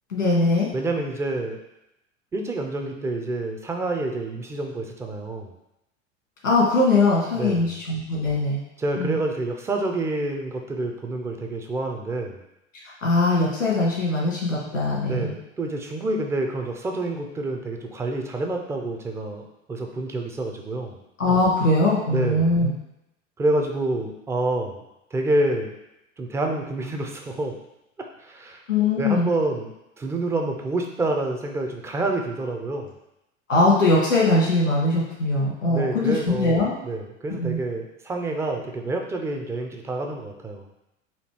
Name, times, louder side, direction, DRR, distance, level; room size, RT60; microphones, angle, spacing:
voice 1, 0.1-0.7 6.4-8.6 9.0-9.2 13.0-15.3 21.2-22.7 28.7-29.3 33.5-36.7 37.4-37.6, left 2 dB, 85° left, -5 dB, 1.6 m, -21 dB
voice 2, 0.7-1.6 2.3-5.5 7.3-7.7 8.8-12.4 15.0-21.0 22.1-22.6 23.4-24.8 25.1-25.7 26.2-27.5 28.0-28.6 29.0-29.7 30.0-32.9 35.7-40.7, right 2 dB, 10° right, 3 dB, 0.3 m, -28 dB
4.2 x 2.7 x 4.5 m, 0.88 s
figure-of-eight pair, 85°, 38 cm